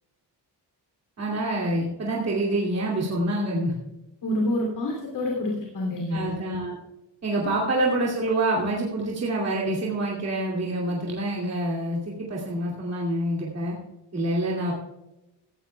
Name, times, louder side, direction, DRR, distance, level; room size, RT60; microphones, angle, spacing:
voice 1, 1.2-3.7 6.1-6.8 7.2-13.8 14.1-14.7, right 1 dB, 35° right, -4 dB, 2.5 m, -26 dB
voice 2, 4.2-6.3, left 1 dB, 65° left, -1 dB, 3.0 m, -27 dB
17.0 x 14.5 x 2.3 m, 0.95 s
wide cardioid pair, 170°, 42 cm